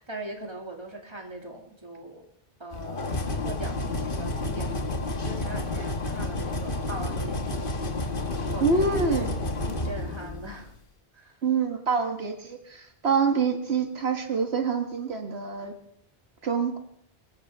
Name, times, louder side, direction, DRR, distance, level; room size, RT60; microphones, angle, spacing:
voice 1, 0.0-2.2 2.6-9.3 9.7-10.7 11.1-11.4, right 2 dB, 25° right, 1 dB, 2.5 m, -41 dB
sound 1, 2.7-10.7, left 2 dB, 60° left, 1.6 m, -30 dB
voice 2, 8.6-9.3 11.4-15.7 16.4-16.8, right 5 dB, 85° right, 4 dB, 1.8 m, -26 dB
24.5 x 15.0 x 3.6 m, 0.71 s
omnidirectional pair, 1.0 m